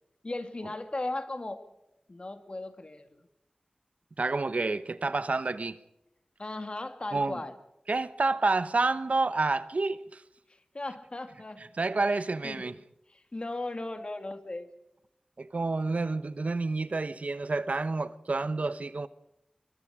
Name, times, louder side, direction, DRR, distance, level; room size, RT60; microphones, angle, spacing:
voice 1, 0.2-1.6 2.1-3.3 6.4-7.6 10.5-11.6 12.1-12.6 13.1-14.7, left 2 dB, 40° left, 2.1 m, -37 dB
voice 2, 4.2-5.8 7.1-7.4 7.9-10.2 11.8-12.7 15.4-19.1, right 3 dB, 60° right, 1.0 m, -29 dB
23.5 x 23.5 x 4.9 m
wide cardioid pair, 70°, 3 cm